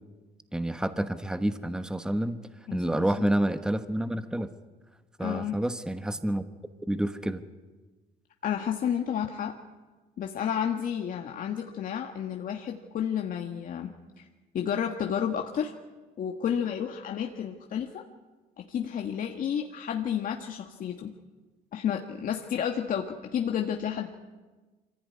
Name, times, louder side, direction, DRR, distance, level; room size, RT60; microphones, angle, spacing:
voice 1, 0.5-2.4 2.7-4.5 5.2-6.4 6.9-7.4, right 1 dB, 5° right, 10 dB, 1.2 m, -28 dB
voice 2, 5.2-5.6 8.4-9.6 10.2-14.3 14.5-15.7 16.2-18.0 18.6-21.2 21.7-24.1, left 8 dB, 55° left, 3 dB, 1.6 m, -31 dB
25.0 x 16.0 x 9.8 m, 1.3 s
cardioid pair, 110°, 17 cm